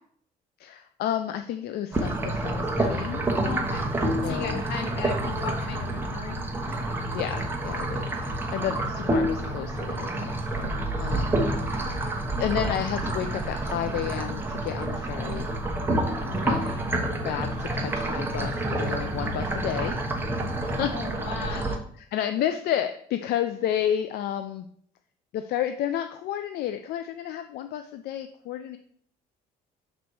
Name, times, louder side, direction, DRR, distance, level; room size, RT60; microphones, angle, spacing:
voice 1, 0.6-3.2 4.2-4.6 7.1-12.1 12.4-15.5 16.3-16.6 17.2-20.0 20.6-21.0 21.3-24.7 25.3-28.8, left 10 dB, 70° left, 9 dB, 0.4 m, -31 dB
sound 1, 1.9-21.8, right 1 dB, 10° right, 1.0 m, -28 dB
voice 2, 3.4-3.9 4.2-6.7 16.1-16.9 20.9-21.8, left 5 dB, 85° left, 3 dB, 1.5 m, -37 dB
6.1 x 4.1 x 4.7 m, 0.62 s
cardioid pair, 110°, 17 cm